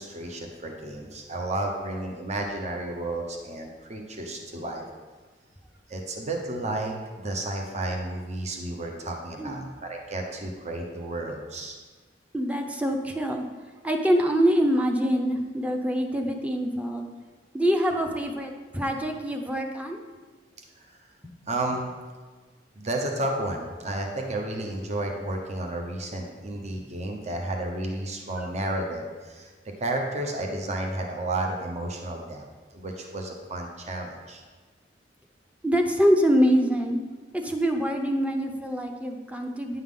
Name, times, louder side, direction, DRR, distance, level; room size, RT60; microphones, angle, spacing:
voice 1, 0.0-4.8 5.9-11.8 20.8-21.0 21.5-21.9 22.8-29.5 29.8-32.4 32.7-34.4, right 1 dB, 40° right, 2 dB, 0.8 m, -32 dB
voice 2, 12.3-13.4 13.8-17.1 17.5-20.0 35.6-37.0 37.3-39.8, equal, 10° right, 3 dB, 0.7 m, -24 dB
9.4 x 5.7 x 3.7 m, 1.4 s
head